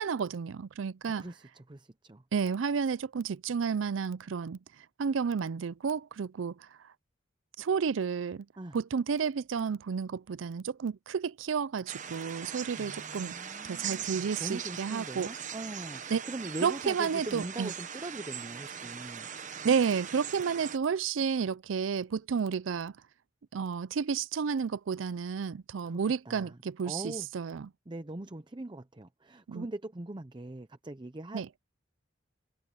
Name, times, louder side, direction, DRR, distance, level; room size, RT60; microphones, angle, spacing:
voice 1, 0.0-1.2 2.3-4.6 5.0-6.5 7.6-8.4 8.7-13.3 13.7-15.3 16.1-16.2 16.6-17.7 19.6-22.9 23.5-27.7 29.5-29.7 31.3-31.5, right 6 dB, 80° right, 0.5 m, -31 dB
voice 2, 1.2-2.2 8.6-8.8 12.4-19.3 25.8-26.6 26.8-27.3 27.9-31.6, right 2 dB, 25° right, 0.7 m, -42 dB
sound 1, 11.9-20.8, right 8 dB, 40° right, 1.1 m, -40 dB
head